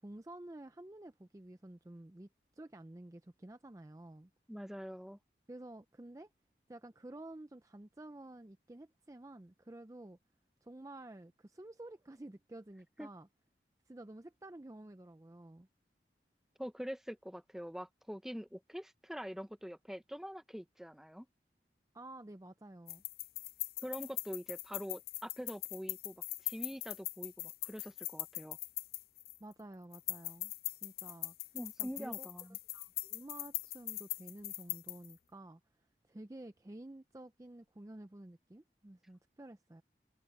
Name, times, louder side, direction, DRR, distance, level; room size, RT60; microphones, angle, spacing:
voice 1, 0.0-4.3 5.5-6.3 6.7-10.2 10.6-13.3 13.9-15.7 21.9-23.0 29.4-30.5 30.8-31.3 31.8-32.3 32.7-35.6 36.1-39.8, right 1 dB, 20° right, 0.5 m, -51 dB
voice 2, 4.5-5.2 13.0-13.1 16.6-21.3 23.8-26.1 26.4-28.6 31.5-32.6, equal, ahead, 1.0 m, -44 dB
sound 1, 22.9-29.5 29.9-35.1, left 19 dB, 55° left, 0.4 m, -41 dB
head